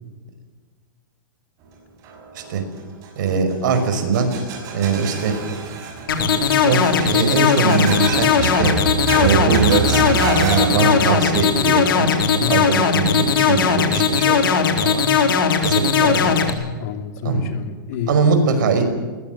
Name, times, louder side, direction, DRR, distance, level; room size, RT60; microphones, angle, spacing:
sound 1, 2.0-13.3, right 7 dB, 30° right, 6.3 m, -28 dB
voice 1, 3.2-4.3 4.7-5.6 6.2-8.7 9.1-12.2 12.5-15.3 15.6-16.5 17.2-17.4 18.1-18.8, right 5 dB, 60° right, 6 dB, 5.7 m, -21 dB
sound 2, 6.1-16.5, left 7 dB, 75° left, 4.0 m, -18 dB
voice 2, 16.0-18.3, left 6 dB, 50° left, 6 dB, 3.0 m, -29 dB
22.0 x 20.0 x 7.6 m, 1.4 s
hypercardioid pair, 155°, 12 cm